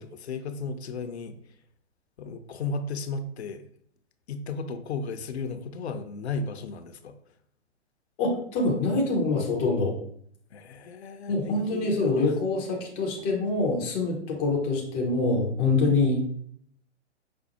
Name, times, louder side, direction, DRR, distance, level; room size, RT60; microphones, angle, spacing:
voice 1, 0.0-1.4 2.2-3.6 4.3-7.1 10.5-12.3, left 4 dB, 70° left, 9 dB, 0.5 m, -35 dB
voice 2, 8.2-10.0 11.3-16.3, left 3 dB, 10° left, -1 dB, 0.4 m, -25 dB
5.1 x 2.0 x 2.7 m, 0.63 s
figure-of-eight pair, 120°, 34 cm